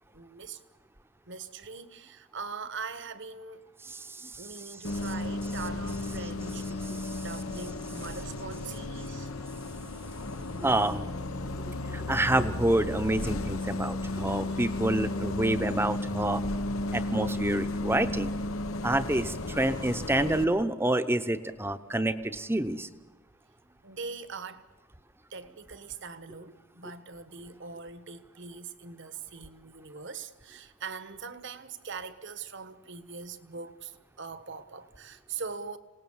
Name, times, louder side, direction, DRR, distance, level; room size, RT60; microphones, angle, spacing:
voice 1, 0.1-0.6 1.3-3.6 4.4-6.9 7.2-9.3 11.9-12.0 14.2-14.6 23.8-24.6 25.3-35.8, right 5 dB, 60° right, 1.3 m, -42 dB
voice 2, 3.8-4.4 7.0-7.1 10.6-11.1 11.7-16.4 16.9-18.3 18.8-22.9, right 1 dB, 10° right, 0.9 m, -28 dB
Bus, 4.8-20.4, left 2 dB, 85° left, 1.2 m, -34 dB
27.0 x 18.5 x 7.3 m
head